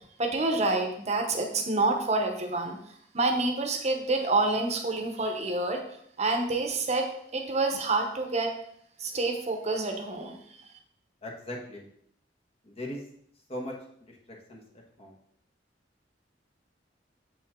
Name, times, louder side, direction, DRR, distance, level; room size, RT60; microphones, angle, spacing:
voice 1, 0.2-2.8 3.1-5.8 6.2-8.5 9.0-10.4, right 2 dB, 40° right, 4 dB, 0.9 m, -27 dB
voice 2, 11.2-11.9 12.6-13.0 13.5-13.7 14.1-14.6 15.0-15.1, left 1 dB, 35° left, -1 dB, 1.5 m, -39 dB
7.4 x 5.8 x 3.7 m, 0.68 s
head